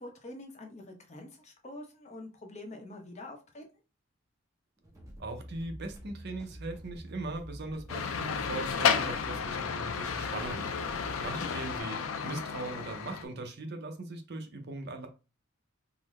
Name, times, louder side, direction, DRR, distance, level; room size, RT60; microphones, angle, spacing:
voice 1, 0.0-3.6, left 1 dB, 35° left, 0.7 m, -46 dB
sound 1, 4.8-11.8, equal, 15° right, 0.8 m, -47 dB
voice 2, 5.2-10.7 11.2-15.1, right 2 dB, 55° right, 0.6 m, -39 dB
sound 2, 7.9-13.2, left 6 dB, 80° left, 0.4 m, -32 dB
3.8 x 2.0 x 3.1 m
head